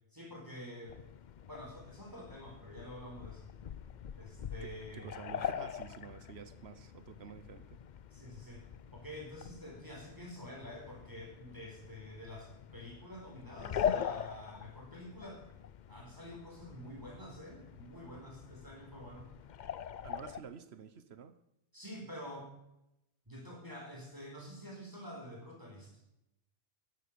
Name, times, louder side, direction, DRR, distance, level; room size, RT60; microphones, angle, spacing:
voice 1, 0.1-1.0 1.5-3.5 4.2-5.1 8.1-8.6 8.9-15.5 15.9-19.3 21.7-22.5 23.3-25.9, equal, 20° right, -1 dB, 4.3 m, -48 dB
sound 1, 0.9-20.4, left 8 dB, 55° left, 0.6 m, -43 dB
voice 2, 4.6-7.8 20.0-21.4, right 7 dB, 80° right, 13 dB, 1.2 m, -49 dB
13.0 x 10.5 x 6.8 m, 0.84 s
omnidirectional pair, 1.1 m